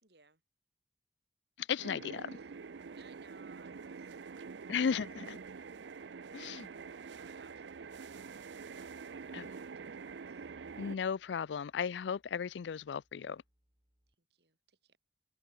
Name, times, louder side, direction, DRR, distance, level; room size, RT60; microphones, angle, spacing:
voice 1, 0.0-0.4 2.2-2.5 2.9-5.1 7.2-8.3 10.3-10.5 14.1-15.0, right 4 dB, 70° right, 4.0 m, -64 dB
voice 2, 1.6-2.2 4.7-5.4 6.3-6.7 9.3-9.5 10.8-13.4, left 7 dB, 85° left, 0.4 m, -35 dB
sound 1, 1.8-11.0, right 5 dB, 85° right, 0.5 m, -46 dB
sound 2, 2.3-14.1, equal, 30° right, 6.4 m, -78 dB
head